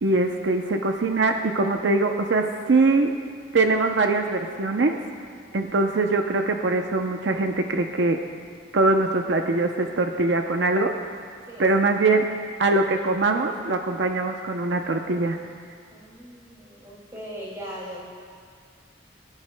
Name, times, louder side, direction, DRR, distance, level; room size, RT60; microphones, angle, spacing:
voice 1, 0.0-3.1 3.5-5.0 5.5-8.2 8.7-10.9 11.6-12.3 12.6-15.4, right 3 dB, 75° right, 4 dB, 0.6 m, -22 dB
voice 2, 11.5-11.8 15.9-18.0, equal, 15° right, -4 dB, 2.3 m, -39 dB
24.0 x 10.5 x 2.2 m, 2.1 s
head